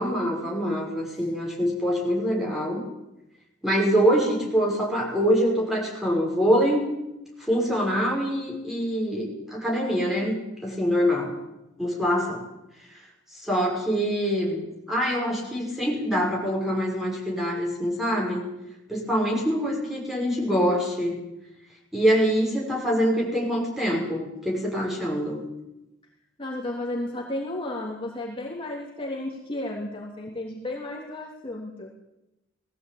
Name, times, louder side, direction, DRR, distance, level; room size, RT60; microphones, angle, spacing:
voice 1, 0.0-2.8 3.6-6.8 7.4-11.3 11.8-12.4 12.9-13.0 13.3-14.6 14.9-18.4 18.9-21.2 21.9-25.4, equal, ahead, -3 dB, 6.5 m, -24 dB
voice 2, 26.4-31.9, left 1 dB, 30° left, -3 dB, 3.2 m, -33 dB
20.5 x 16.0 x 8.9 m, 0.94 s
head